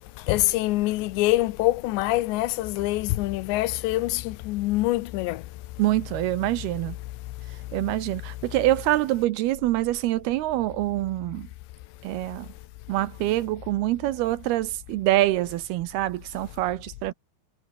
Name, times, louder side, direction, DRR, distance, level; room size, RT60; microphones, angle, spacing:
voice 1, 0.3-4.1 4.5-5.4, left 17 dB, 85° left, 3.2 m, -24 dB
voice 2, 5.8-7.0 7.7-11.5 12.0-12.5 12.9-17.1, right 16 dB, 75° right, 2.5 m, -25 dB
omnidirectional pair, 5.0 m